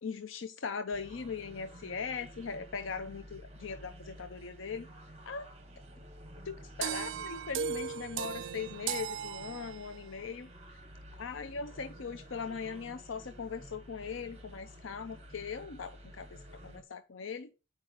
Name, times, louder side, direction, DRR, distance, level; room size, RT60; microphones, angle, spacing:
voice 1, 0.0-4.9 5.3-5.4 6.4-10.5 11.2-17.5, left 5 dB, 85° left, 9 dB, 0.6 m, -40 dB
sound 1, 0.9-16.8, equal, 35° right, 1.3 m, -51 dB
sound 2, 6.8-10.1, right 8 dB, 75° right, 0.4 m, -37 dB
8.7 x 4.9 x 4.9 m, 0.31 s
head